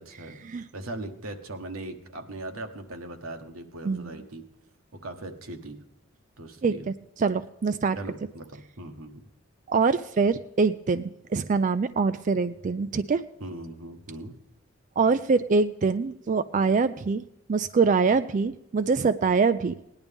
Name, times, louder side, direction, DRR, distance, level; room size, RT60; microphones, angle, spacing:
voice 1, 0.0-0.4 0.7-4.4 4.9-5.8 6.4-6.9 7.9-9.2 13.4-14.3, right 2 dB, 85° right, 5 dB, 1.4 m, -39 dB
voice 2, 6.6-8.0 9.7-13.2 15.0-17.2 17.5-19.7, right 4 dB, 40° right, 11 dB, 0.4 m, -24 dB
18.5 x 10.5 x 3.5 m, 0.87 s
head